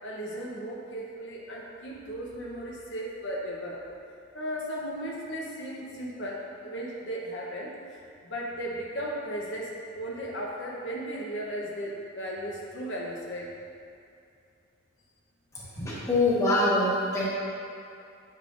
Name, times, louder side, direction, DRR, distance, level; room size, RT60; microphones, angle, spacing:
voice 1, 0.0-3.8 4.3-13.5, equal, 65° left, -3 dB, 0.8 m, -36 dB
voice 2, 15.5-17.3, left 2 dB, 15° left, -8 dB, 1.2 m, -25 dB
8.4 x 5.6 x 2.5 m, 2.5 s
head